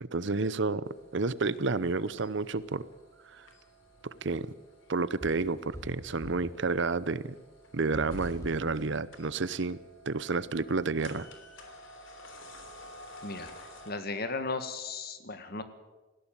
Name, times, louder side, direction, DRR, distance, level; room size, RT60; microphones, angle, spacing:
voice 1, 0.0-2.9 3.3-3.5 4.0-4.5 4.9-7.3 7.7-9.8 10.1-11.3, right 3 dB, 65° right, 17 dB, 0.8 m, -30 dB
sound 1, 0.8-13.9, equal, 75° left, 3.4 m, -51 dB
sound 2, 5.2-6.6 7.9-8.8, equal, 15° left, 5.9 m, -43 dB
voice 2, 13.2-13.5 13.9-15.6, left 3 dB, 50° left, 9 dB, 1.9 m, -35 dB
19.5 x 16.0 x 9.0 m, 1.2 s
head